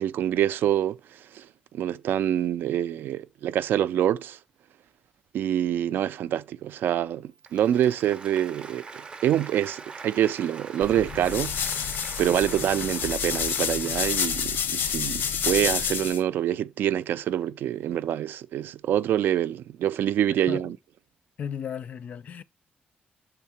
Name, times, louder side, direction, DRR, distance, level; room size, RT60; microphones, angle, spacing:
voice 1, 0.0-1.5 1.7-4.4 5.3-11.7 12.2-20.8, right 11 dB, 90° right, 0.4 m, -26 dB
Applause, 7.4-14.8, right 4 dB, 25° right, 0.6 m, -43 dB
sound 1, 10.8-16.2, left 7 dB, 85° left, 0.7 m, -29 dB
voice 2, 21.4-22.4, left 8 dB, 45° left, 0.4 m, -35 dB
6.5 x 3.7 x 5.7 m
wide cardioid pair, 175°, 3 cm